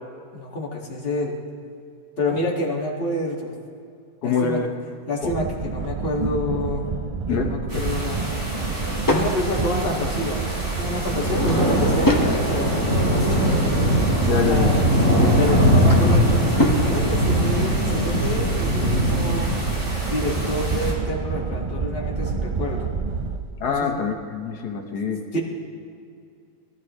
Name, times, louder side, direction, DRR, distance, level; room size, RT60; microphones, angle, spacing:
voice 1, 0.3-1.4 2.2-3.6 4.2-4.6 5.1-6.9 7.3-8.3 9.1-13.8 14.5-14.9 15.2-19.5 20.0-22.9 23.6-23.9 25.3-25.4, left 1 dB, 35° left, -3 dB, 2.1 m, -28 dB
voice 2, 4.2-4.7 5.2-5.3 7.3-7.8 14.2-14.8 23.6-25.2, left 5 dB, 80° left, 3 dB, 1.8 m, -25 dB
sound 1, 5.2-23.4, right 5 dB, 55° right, 0.4 m, -28 dB
sound 2, 7.7-20.9, equal, 35° right, 4.2 m, -22 dB
Drawer open or close / Wood, 8.4-9.3 11.0-12.3 12.9-14.0 15.4-16.9, left 1 dB, 15° left, 1.1 m, -27 dB
21.5 x 13.5 x 3.2 m, 2.5 s
omnidirectional pair, 1.7 m